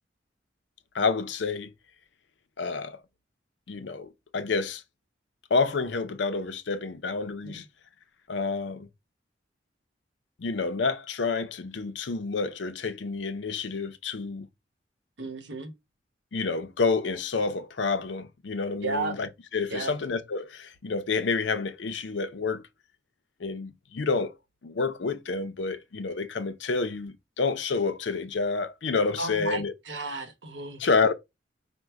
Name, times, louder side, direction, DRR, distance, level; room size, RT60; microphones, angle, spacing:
voice 1, 0.9-1.7 2.6-3.0 3.7-4.8 5.5-7.6 8.3-8.9 10.4-14.5 16.3-22.6 23.4-24.3 24.6-29.7 30.8-31.1, left 4 dB, 85° left, 0.6 m, -29 dB
voice 2, 15.2-15.7 18.8-19.1 19.7-19.9 29.2-30.8, right 3 dB, 85° right, 1.0 m, -33 dB
5.1 x 2.1 x 4.5 m
head